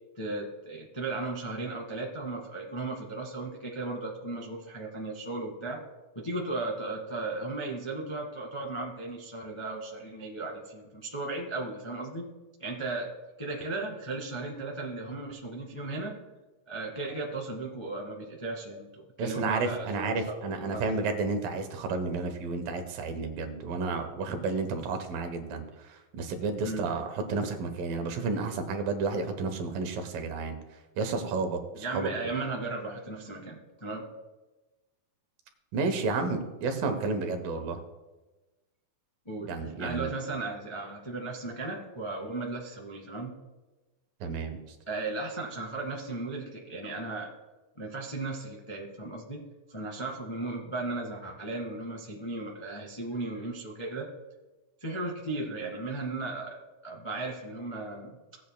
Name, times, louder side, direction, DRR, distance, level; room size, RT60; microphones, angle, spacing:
voice 1, 0.1-5.8 6.1-12.2 12.6-13.1 13.4-16.1 16.6-20.8 26.6-26.8 31.7-34.0 39.2-43.3 44.9-47.3 47.8-49.4 49.7-54.1 54.8-56.6 56.8-58.1, right 2 dB, 55° left, -2 dB, 0.3 m, -36 dB
voice 2, 19.2-30.6 31.0-32.1 35.7-37.8 39.5-40.1 44.2-44.6, right 4 dB, 80° right, 6 dB, 2.7 m, -31 dB
17.5 x 8.4 x 2.2 m, 1.1 s
omnidirectional pair, 4.0 m